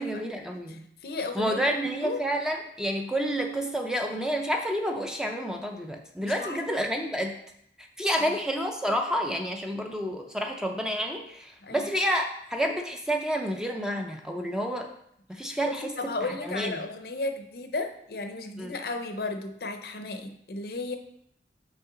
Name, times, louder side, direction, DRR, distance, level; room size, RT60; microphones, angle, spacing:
voice 1, 0.0-0.8 1.3-7.4 7.8-14.9 15.3-16.8 18.6-18.7, equal, 5° right, 3 dB, 0.4 m, -29 dB
voice 2, 1.0-1.6 2.0-2.2 6.2-6.6 8.2-8.3 11.6-11.9 15.7-21.0, left 3 dB, 60° left, 6 dB, 0.6 m, -34 dB
5.7 x 5.3 x 3.7 m, 0.73 s
head